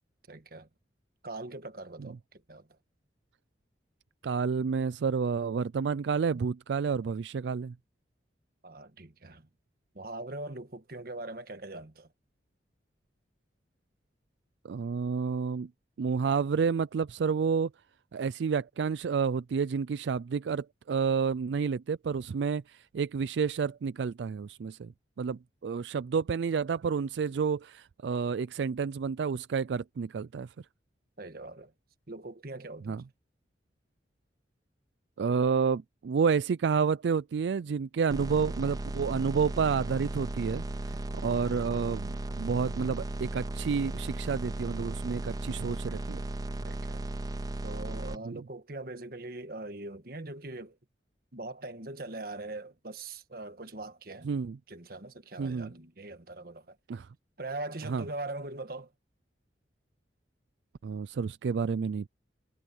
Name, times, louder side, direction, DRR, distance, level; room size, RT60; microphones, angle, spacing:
voice 1, 0.3-0.7 1.2-2.8 8.6-9.5 9.9-12.1 31.2-31.7 32.1-33.0 46.6-47.2 47.6-50.8 51.3-54.3 54.7-56.8 57.4-58.9, right 2 dB, 55° right, 1.5 m, -41 dB
voice 2, 4.2-7.7 14.6-15.7 16.0-17.7 18.1-24.9 25.2-30.5 32.9-33.0 35.2-40.9 41.2-46.2 48.2-48.4 54.2-54.6 55.4-55.7 56.9-57.1 57.9-58.0 60.8-62.1, right 5 dB, 85° right, 0.4 m, -30 dB
sound 1, 38.1-48.2, right 2 dB, 20° right, 0.4 m, -36 dB
head